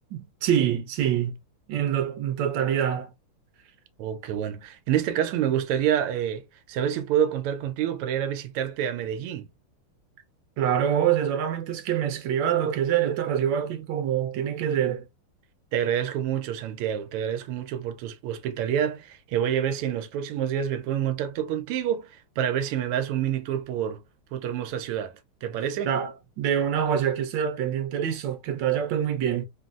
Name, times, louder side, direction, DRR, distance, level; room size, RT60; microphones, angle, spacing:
voice 1, 0.1-1.3 1.7-3.1 10.6-15.0 25.8-29.4, right 9 dB, 65° right, 1.3 m, -25 dB
voice 2, 4.0-9.5 15.7-24.0 24.3-25.1 25.4-25.9, right 10 dB, 90° right, 1.5 m, -27 dB
3.8 x 2.0 x 2.3 m
omnidirectional pair, 2.4 m